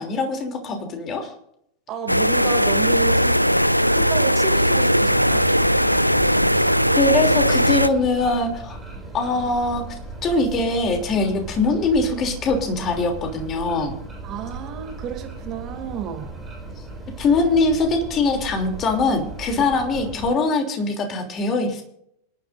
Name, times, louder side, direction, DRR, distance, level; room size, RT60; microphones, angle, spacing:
voice 1, 0.0-1.3 6.9-8.8 9.1-13.9 17.2-21.8, left 3 dB, 30° left, 4 dB, 3.1 m, -22 dB
voice 2, 1.9-3.4 3.9-5.5 14.2-16.4, right 8 dB, 35° right, 5 dB, 2.7 m, -31 dB
sound 1, 2.1-7.9, equal, 90° left, 0.4 m, -18 dB
sound 2, 5.3-20.3, right 3 dB, 15° right, 4.3 m, -37 dB
26.5 x 11.5 x 2.6 m, 0.75 s
figure-of-eight pair, 90°, 0 cm